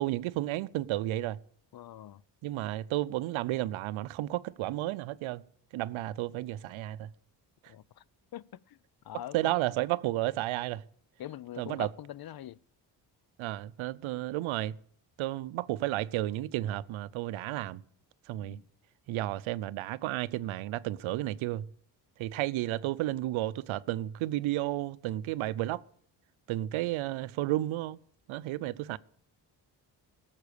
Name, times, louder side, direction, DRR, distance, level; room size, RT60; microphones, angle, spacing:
voice 1, 0.0-1.4 2.4-5.4 5.7-7.1 9.3-10.8 11.6-11.9 13.4-14.8 15.2-17.8 18.3-18.6 19.1-21.7 22.2-25.8 26.5-28.0 28.3-29.0, right 15 dB, 85° right, 0.6 m, -32 dB
voice 2, 1.7-2.2 7.7-8.0 8.3-8.8 9.0-9.5 11.2-12.6 18.4-18.7, left 12 dB, 50° left, 0.6 m, -43 dB
17.5 x 7.5 x 6.7 m
supercardioid pair, 55°, 47 cm